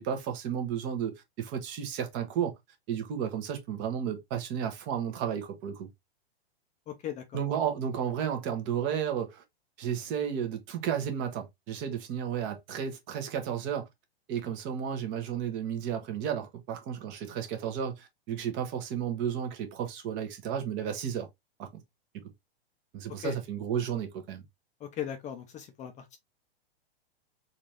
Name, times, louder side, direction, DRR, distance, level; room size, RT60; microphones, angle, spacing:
voice 1, 0.0-2.5 2.9-5.9 7.3-9.4 9.8-13.9 14.3-21.3 21.6-21.7 22.9-24.4, right 8 dB, 35° right, 1.2 m, -33 dB
voice 2, 6.9-7.4 23.2-23.4 24.8-26.2, left 10 dB, 25° left, 0.6 m, -38 dB
4.1 x 2.7 x 3.1 m
hypercardioid pair, 125°, 31 cm